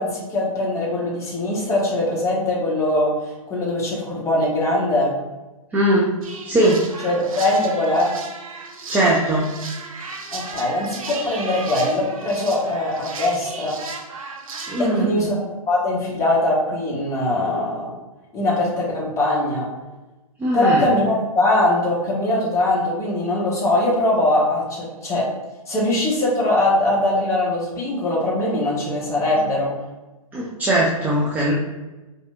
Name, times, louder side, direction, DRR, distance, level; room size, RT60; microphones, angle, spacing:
voice 1, 0.0-5.1 7.0-8.1 10.3-13.8 14.8-15.4 15.7-17.9 18.3-19.7 20.5-25.2 25.7-29.7, left 1 dB, 15° left, -4 dB, 1.0 m, -21 dB
voice 2, 5.7-6.1 6.5-6.8 8.9-9.5 14.7-15.3 20.4-20.9 30.3-31.5, right 1 dB, 10° right, -5 dB, 0.4 m, -19 dB
sound 1, 6.2-14.9, right 4 dB, 70° right, 0.6 m, -35 dB
4.8 x 2.7 x 2.3 m, 1.1 s
figure-of-eight pair, 120°, 19 cm